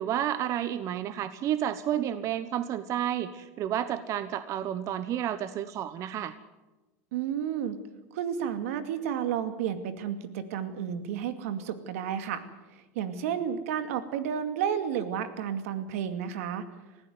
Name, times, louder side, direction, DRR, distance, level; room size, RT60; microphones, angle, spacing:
voice 1, 0.0-6.3, right 10 dB, 45° right, 13 dB, 1.1 m, -31 dB
voice 2, 7.1-7.8 8.1-12.4 13.0-16.6, right 8 dB, 75° right, 9 dB, 2.3 m, -31 dB
20.0 x 15.5 x 9.5 m, 1.1 s
supercardioid pair, 115°, 8 cm